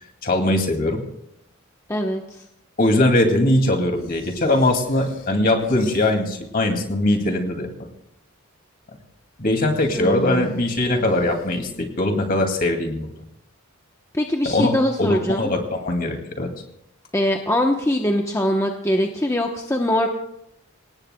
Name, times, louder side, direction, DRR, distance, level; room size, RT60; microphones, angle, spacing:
voice 1, 0.2-1.0 2.8-7.7 9.4-13.1 14.4-14.7 15.0-16.5, left 1 dB, 40° left, 3 dB, 2.4 m, -21 dB
voice 2, 1.9-2.4 10.0-10.5 14.1-15.5 17.1-20.1, left 1 dB, 15° left, 2 dB, 0.9 m, -22 dB
sound 1, 3.9-6.5 6.8-7.6 9.6-12.1, left 1 dB, 70° left, 7.7 m, -45 dB
27.0 x 18.0 x 2.3 m, 0.77 s
head